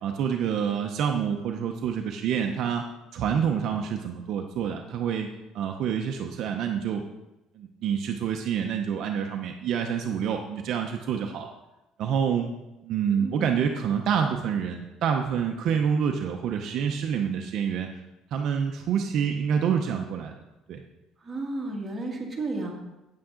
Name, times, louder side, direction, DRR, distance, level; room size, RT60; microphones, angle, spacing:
voice 1, 0.0-2.8 3.1-5.3 5.5-7.0 7.6-11.5 12.0-12.5 12.8-17.9 18.3-20.4 20.7-20.8, right 7 dB, 55° right, 3 dB, 0.7 m, -27 dB
voice 2, 13.2-13.5 21.2-22.8, right 2 dB, 15° right, -2 dB, 1.8 m, -33 dB
8.7 x 8.5 x 3.8 m, 0.98 s
cardioid pair, 150°, 0 cm